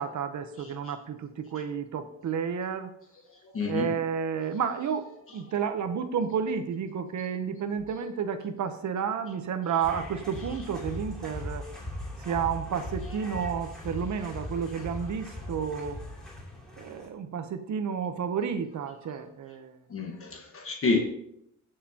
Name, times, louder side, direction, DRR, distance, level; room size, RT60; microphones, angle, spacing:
voice 1, 0.0-2.9 3.6-5.1 5.3-11.7 12.2-16.0 16.8-19.8, right 7 dB, 65° right, 8 dB, 0.8 m, -31 dB
voice 2, 0.6-0.9 3.5-3.9 19.9-21.0, left 4 dB, 45° left, 1 dB, 1.4 m, -29 dB
sound 1, 9.8-17.1, left 1 dB, ahead, 2.8 m, -39 dB
19.0 x 6.6 x 2.8 m, 0.76 s
wide cardioid pair, 160°, 31 cm